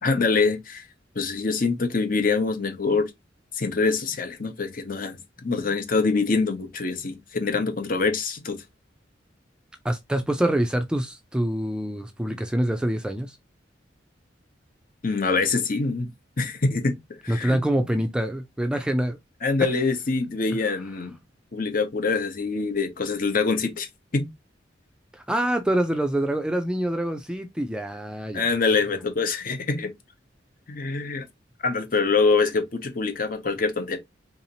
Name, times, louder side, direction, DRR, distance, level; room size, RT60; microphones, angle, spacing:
voice 1, 0.0-0.8 1.1-3.1 3.5-5.2 5.4-8.6 15.0-16.1 16.4-16.9 17.2-18.0 19.4-21.2 21.5-24.3 28.3-29.9 30.7-31.2 31.6-34.0, left 4 dB, 50° left, 0.8 m, -25 dB
voice 2, 9.8-13.4 17.3-19.2 20.6-20.8 25.1-28.5, right 1 dB, 5° right, 0.4 m, -25 dB
3.8 x 2.8 x 2.7 m
head